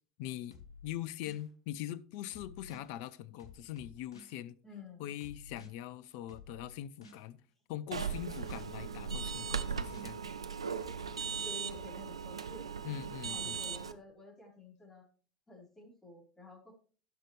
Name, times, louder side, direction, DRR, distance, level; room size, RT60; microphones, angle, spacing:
voice 1, 0.2-0.6 0.8-4.6 5.0-7.4 7.7-10.3 12.8-13.6, left 12 dB, 60° left, 0.7 m, -42 dB
sound 1, 0.5-1.5 2.3-2.9 3.4-4.4 5.2-5.7 6.3-7.3 8.1-8.7 9.2-10.1 10.8-11.9, left 4 dB, 75° left, 1.2 m, -53 dB
voice 2, 4.6-5.1 11.4-12.6 13.3-15.1 15.5-16.7, left 1 dB, 20° left, 4.5 m, -51 dB
sound 2, 7.9-13.9, right 6 dB, 85° right, 0.6 m, -38 dB
16.0 x 5.9 x 3.3 m
figure-of-eight pair, 70°, 3 cm